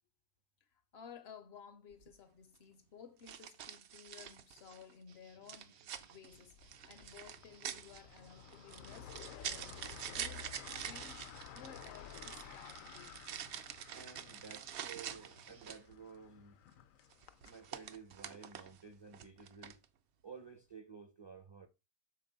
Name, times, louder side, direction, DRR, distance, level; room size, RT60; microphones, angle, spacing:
voice 1, 0.9-10.5 10.9-13.2, left 7 dB, 65° left, 0.7 m, -56 dB
sound 1, 1.9-2.1 3.3-4.9 5.5-15.9 17.1-18.8 19.1-19.8, right 9 dB, 65° right, 0.8 m, -46 dB
sound 2, 5.1-15.7, right 7 dB, 85° right, 1.2 m, -65 dB
sound 3, 6.3-17.8, left 9 dB, 85° left, 1.0 m, -54 dB
voice 2, 13.9-16.6 17.4-19.8 20.2-21.7, right 5 dB, 35° right, 0.4 m, -53 dB
6.6 x 3.9 x 3.9 m
omnidirectional pair, 1.4 m